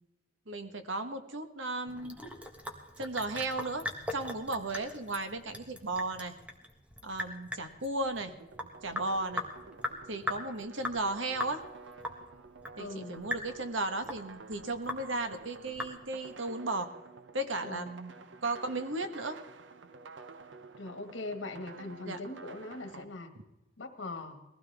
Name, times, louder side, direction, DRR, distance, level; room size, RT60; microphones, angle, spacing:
voice 1, 0.5-2.2 3.0-6.3 7.0-8.3 8.8-9.4 10.1-11.6 12.8-16.9 17.3-18.1 18.4-19.4 22.1-22.2, right 2 dB, 90° right, 8 dB, 1.4 m, -35 dB
Sink (filling or washing) / Drip, 1.9-16.3, left 1 dB, 5° right, 1.5 m, -40 dB
sound 1, 8.3-23.0, right 4 dB, 70° right, 0.8 m, -51 dB
voice 2, 12.8-13.2 17.7-17.9 20.8-23.3 23.8-24.4, left 2 dB, 80° left, 6 dB, 1.8 m, -41 dB
20.5 x 15.5 x 3.5 m, 1.0 s
head